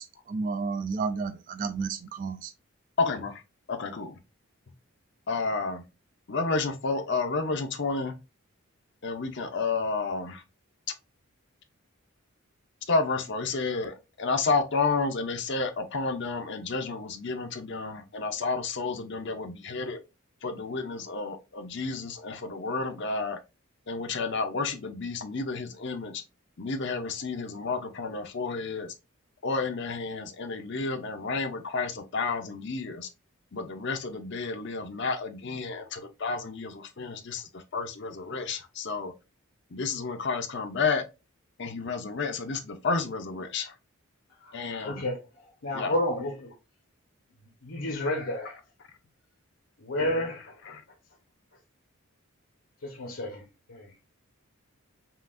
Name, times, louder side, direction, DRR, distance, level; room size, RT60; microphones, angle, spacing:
voice 1, 0.0-2.5, right 4 dB, 40° right, 0.3 m, -32 dB
voice 2, 3.0-3.3 3.7-4.1 5.3-5.8 6.3-8.1 9.0-10.4 12.9-20.0 20.4-23.4 23.9-26.2 26.6-28.9 29.4-33.1 33.5-37.4 37.7-39.1 39.7-41.0 41.6-43.7 44.5-45.0 45.7-45.9 50.7-50.8, left 4 dB, 55° left, 0.6 m, -31 dB
voice 3, 44.4-45.2 45.6-46.5 47.6-48.6 49.8-50.8 52.8-53.4 53.7-53.9, left 1 dB, 70° left, 1.0 m, -31 dB
5.6 x 2.5 x 2.4 m
head